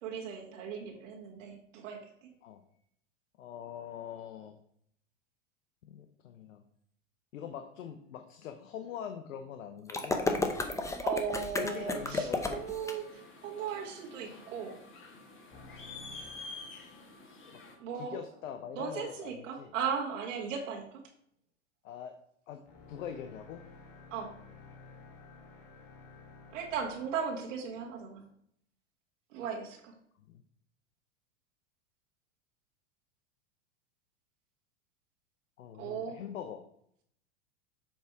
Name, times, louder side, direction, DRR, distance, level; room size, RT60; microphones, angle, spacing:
voice 1, 0.0-2.0 11.0-14.8 17.8-18.2 18.7-21.0 24.1-24.3 26.5-28.2 29.3-29.9 35.8-36.2, right 7 dB, 75° right, 0 dB, 2.0 m, -37 dB
voice 2, 3.4-4.6 5.8-6.6 7.3-10.2 11.5-12.7 17.5-17.6 17.9-19.7 21.8-22.1 22.5-23.6 30.2-30.4 35.6-36.6, left 8 dB, 85° left, 7 dB, 0.8 m, -43 dB
sound 1, 9.9-12.9, left 3 dB, 10° left, 0.6 m, -32 dB
sound 2, 11.7-17.7, left 3 dB, 30° left, 1.7 m, -49 dB
sound 3, 15.5-17.6 22.6-28.3, left 4 dB, 60° left, 2.1 m, -54 dB
7.4 x 3.5 x 4.6 m, 0.69 s
hypercardioid pair, 115°, 38 cm